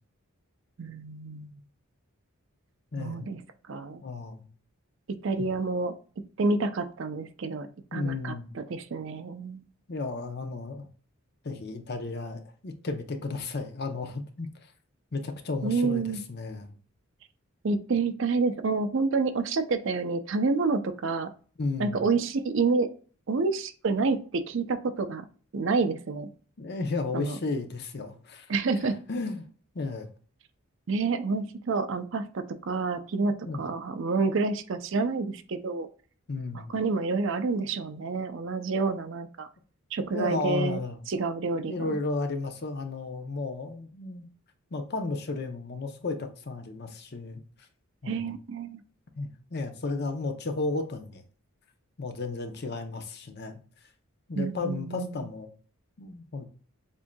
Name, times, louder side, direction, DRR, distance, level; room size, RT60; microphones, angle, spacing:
voice 1, 0.8-1.6 3.0-3.4 3.7-4.0 5.1-5.9 6.4-9.7 15.6-16.2 17.6-21.3 21.8-22.9 23.3-25.3 25.5-26.3 27.1-27.4 28.5-29.0 30.9-35.9 36.7-39.5 39.9-40.8 41.1-42.0 48.0-48.8 54.4-55.2, right 4 dB, 60° right, 10 dB, 0.5 m, -28 dB
voice 2, 2.9-3.3 4.0-4.4 5.4-5.5 7.9-8.5 9.9-10.9 11.4-14.5 15.1-16.8 21.6-22.0 26.6-28.5 29.1-29.5 29.7-30.1 33.5-33.6 36.3-36.8 40.0-41.0 41.7-44.3 44.7-47.4 48.0-48.3 49.2-51.2 52.0-53.6 54.3-55.5 56.0-56.5, left 3 dB, 50° left, 7 dB, 0.6 m, -33 dB
7.3 x 2.7 x 2.2 m, 0.41 s
head